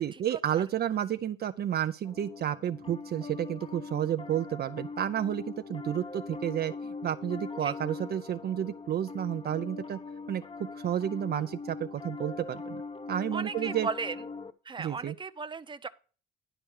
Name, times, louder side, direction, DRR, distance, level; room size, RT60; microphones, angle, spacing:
voice 1, 0.0-10.0 10.3-12.8 13.1-13.9 14.8-15.1, right 10 dB, 55° right, 0.5 m, -31 dB
Piano, 2.0-14.5, left 4 dB, 25° left, 0.8 m, -41 dB
voice 2, 13.3-14.1 14.6-15.9, right 5 dB, 25° right, 0.8 m, -36 dB
11.0 x 4.5 x 6.3 m
cardioid pair, 90°, 20 cm